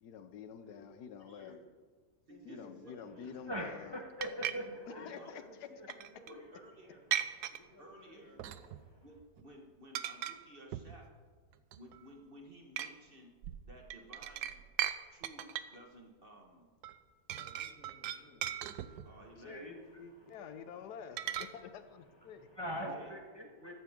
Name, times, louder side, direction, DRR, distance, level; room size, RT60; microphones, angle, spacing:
voice 1, 0.0-1.6 2.4-4.0 4.9-5.7 19.4-19.7 20.0-22.5, left 7 dB, 85° left, 10 dB, 1.3 m, -48 dB
voice 2, 1.2-1.6 2.3-3.5 5.0-5.4 6.3-7.1 7.8-8.4 9.0-11.1 11.8-13.4 13.6-14.7 15.1-16.7 19.0-19.6 22.8-23.1 23.6-23.7, right 1 dB, 35° right, 1 dB, 1.7 m, -55 dB
voice 3, 2.3-3.2 4.3-6.4 7.5-8.8 17.3-18.5, left 1 dB, 60° left, -1 dB, 3.0 m, -57 dB
voice 4, 3.1-5.2 5.8-5.9 6.3-6.5 7.4-7.6 8.0-8.1 8.7-9.0 19.4-20.3 20.6-20.7 22.3-23.7, equal, 15° right, 1 dB, 1.4 m, -43 dB
sound 1, 4.2-4.5 5.9-6.3 7.1-7.6 8.4-8.9 9.2-9.5 9.9-10.4 10.7-11.0 11.5-12.0 12.8-12.9 13.4-15.0 15.2-15.8 16.8-17.0 17.3-19.2 21.2-21.5, right 11 dB, 80° right, 1.2 m, -38 dB
14.5 x 14.0 x 3.7 m, 1.5 s
omnidirectional pair, 1.7 m